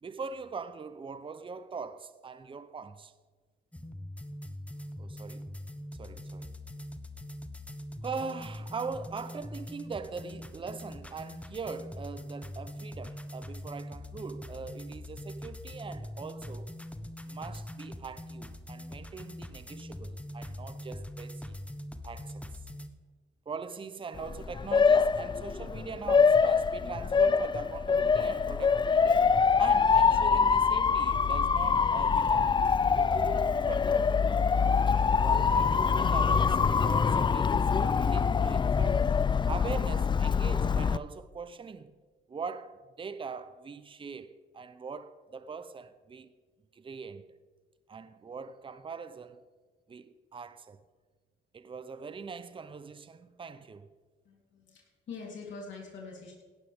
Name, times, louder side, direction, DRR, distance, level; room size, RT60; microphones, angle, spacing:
voice 1, 0.0-3.1 5.0-5.5 6.0-6.5 8.0-16.7 17.2-21.6 22.0-22.4 23.5-29.3 29.6-32.5 32.9-34.3 34.9-39.0 39.5-42.0 42.3-46.3 46.7-47.4 47.9-49.4 49.9-50.8 51.5-53.9, right 5 dB, 25° right, 0.7 m, -42 dB
sound 1, 3.7-22.9, left 1 dB, 5° left, 1.0 m, -42 dB
Motor vehicle (road) / Siren, 24.2-41.0, left 5 dB, 25° left, 0.4 m, -25 dB
voice 2, 54.2-56.3, left 4 dB, 70° left, 3.5 m, -44 dB
17.0 x 12.0 x 3.6 m
cardioid pair, 90°, 20 cm